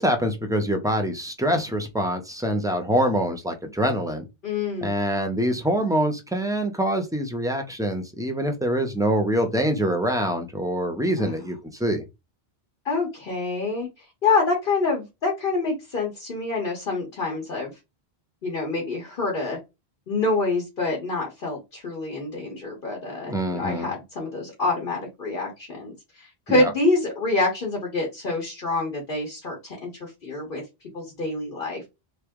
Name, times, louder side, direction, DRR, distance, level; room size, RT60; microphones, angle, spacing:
voice 1, 0.0-4.2 4.8-12.0 23.3-23.9 26.5-26.7, equal, 5° right, 0.6 m, -25 dB
voice 2, 4.4-4.9 11.2-11.5 12.8-13.9 14.2-17.7 18.4-19.6 20.1-30.6 30.9-31.9, left 3 dB, 55° left, 1.5 m, -26 dB
3.3 x 2.8 x 3.5 m
omnidirectional pair, 1.1 m